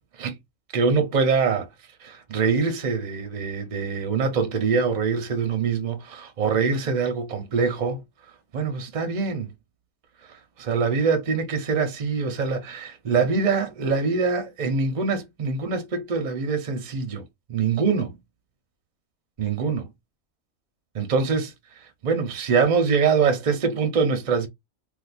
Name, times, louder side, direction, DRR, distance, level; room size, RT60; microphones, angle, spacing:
voice 1, 0.7-1.7 2.0-8.0 8.5-9.5 10.6-18.2 19.4-19.9 20.9-21.5 22.0-24.5, right 5 dB, 45° right, 0.6 m, -24 dB
2.5 x 2.4 x 4.1 m
omnidirectional pair, 1.5 m